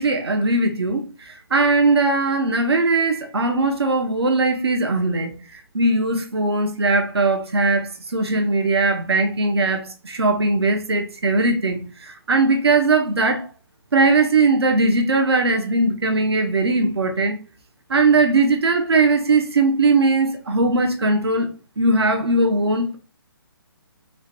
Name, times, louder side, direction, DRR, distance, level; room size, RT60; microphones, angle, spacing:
voice 1, 0.0-5.3 5.7-13.5 13.9-17.4 17.9-21.5 21.8-23.0, right 3 dB, 85° right, 0.7 m, -19 dB
4.4 x 2.2 x 2.6 m
hypercardioid pair, 155°, 13 cm